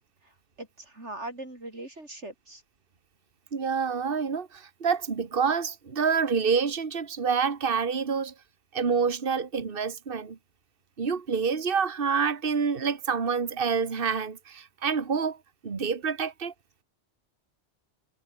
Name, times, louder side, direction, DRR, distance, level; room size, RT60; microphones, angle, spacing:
voice 1, 0.6-2.6, right 2 dB, 85° right, 6.6 m, -40 dB
voice 2, 3.5-8.3 8.7-10.4 11.0-15.4 15.6-16.5, right 6 dB, 55° right, 1.8 m, -27 dB
omnidirectional pair, 1.2 m